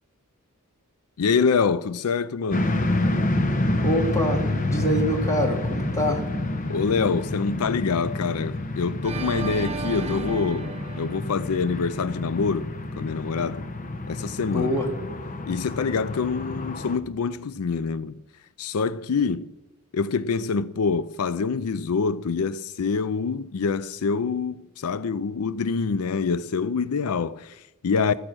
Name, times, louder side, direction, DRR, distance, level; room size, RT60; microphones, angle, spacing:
voice 1, 1.2-2.8 6.7-12.7 13.0-13.7 14.1-14.8 15.5-18.2 18.6-19.5 19.9-28.1, left 5 dB, 75° left, 0.5 m, -26 dB
sound 1, 2.5-17.0, left 2 dB, 35° left, 1.1 m, -28 dB
voice 2, 3.8-4.4 4.7-6.2 14.5-14.9, equal, 15° left, 2.9 m, -25 dB
Organ, 9.0-12.1, right 3 dB, 30° right, 1.0 m, -34 dB
15.0 x 13.5 x 6.2 m
head